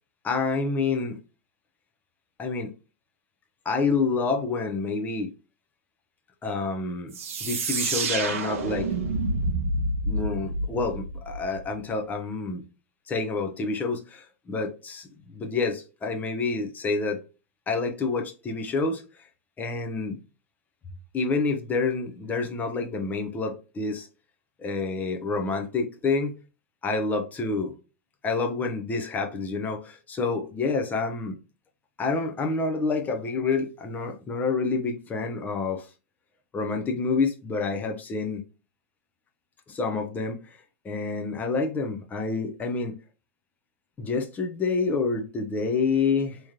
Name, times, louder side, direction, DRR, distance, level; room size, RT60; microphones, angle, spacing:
voice 1, 0.2-1.2 2.4-2.7 3.6-5.3 6.4-8.9 10.1-12.6 13.1-17.2 17.7-19.0 19.6-20.2 21.1-24.1 24.6-26.4 26.8-27.7 28.2-31.4 32.0-35.9 36.5-38.4 39.7-40.6 40.8-42.9 44.0-46.4, left 4 dB, 20° left, 0.8 m, -28 dB
sound 1, 7.1-11.7, right 2 dB, 65° right, 0.9 m, -28 dB
3.6 x 3.1 x 2.8 m
hypercardioid pair, 105°, 8 cm